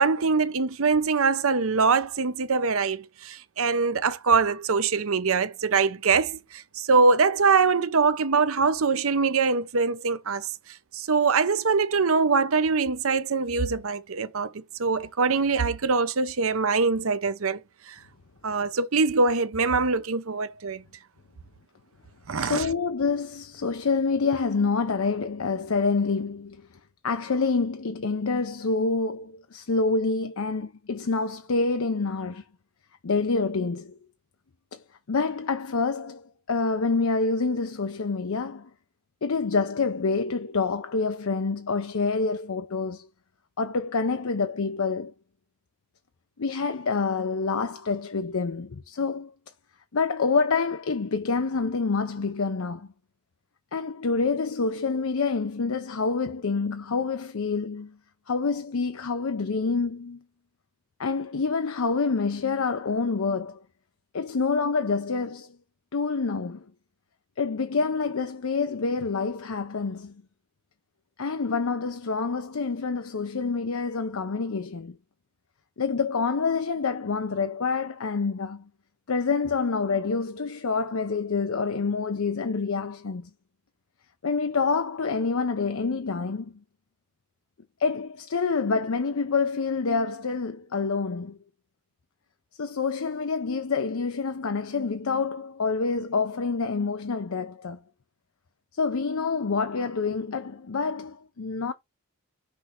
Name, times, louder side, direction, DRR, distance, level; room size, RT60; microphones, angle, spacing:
voice 1, 0.0-10.5 10.9-17.6 18.4-20.8 22.3-22.7, right 4 dB, 70° right, 0.8 m, -23 dB
voice 2, 22.3-26.6 27.0-32.4 33.0-34.0 34.7-38.7 39.2-43.1 43.6-45.1 46.4-49.3 49.9-52.9 53.7-58.0 58.3-60.2 61.0-63.6 64.1-65.6 65.9-66.7 67.4-70.2 71.2-75.0 75.8-78.7 79.1-83.3 84.2-86.6 87.8-91.4 92.6-97.8 98.7-101.7, left 4 dB, 70° left, 0.6 m, -27 dB
6.1 x 3.3 x 5.8 m
head